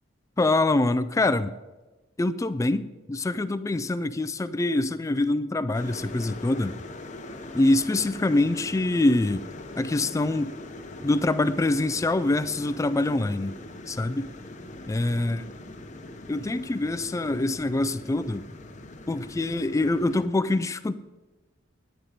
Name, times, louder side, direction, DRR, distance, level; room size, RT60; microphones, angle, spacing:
voice 1, 0.4-1.5 2.2-6.8 7.5-9.4 9.8-10.6 11.0-13.6 13.9-14.3 14.9-15.4 16.3-18.5 19.1-20.9, left 2 dB, 15° left, 13 dB, 0.3 m, -25 dB
sound 1, 5.7-20.3, left 2 dB, 40° left, 0.9 m, -42 dB
10.0 x 9.2 x 4.9 m, 1.2 s
head